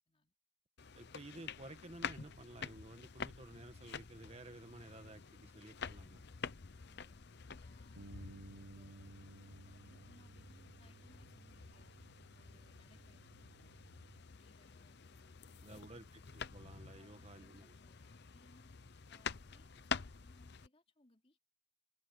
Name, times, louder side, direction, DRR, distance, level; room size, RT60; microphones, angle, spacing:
sound 1, 0.8-20.7, left 6 dB, 55° left, 0.8 m, -48 dB
voice 1, 0.9-6.2 15.6-16.1 16.3-17.7, right 1 dB, 30° right, 1.6 m, -53 dB
voice 2, 6.9-7.2 7.6-8.2 8.5-9.1 9.4-12.0 12.3-13.8 14.3-16.3 16.9-18.7 19.1-21.4, left 2 dB, 30° left, 3.3 m, -70 dB
Bass guitar, 8.0-14.2, right 2 dB, 70° right, 1.1 m, -57 dB
head